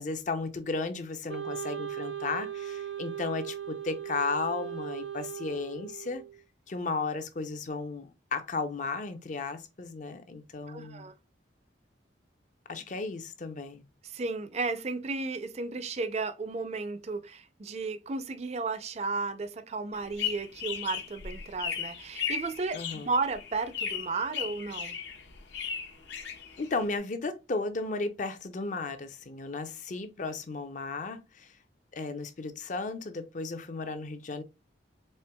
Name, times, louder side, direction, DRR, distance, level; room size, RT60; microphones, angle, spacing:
voice 1, 0.0-6.2 6.7-11.1 12.7-13.8 22.7-23.1 26.6-31.5 31.9-34.4, left 3 dB, 40° left, 0.5 m, -34 dB
Wind instrument woodwind instrument, 1.3-6.4, right 9 dB, 85° right, 0.5 m, -38 dB
voice 2, 10.7-11.1 14.0-25.0, right 3 dB, 35° right, 0.4 m, -34 dB
sound 1, 19.9-27.0, left 8 dB, 70° left, 0.8 m, -36 dB
4.3 x 3.3 x 2.2 m
head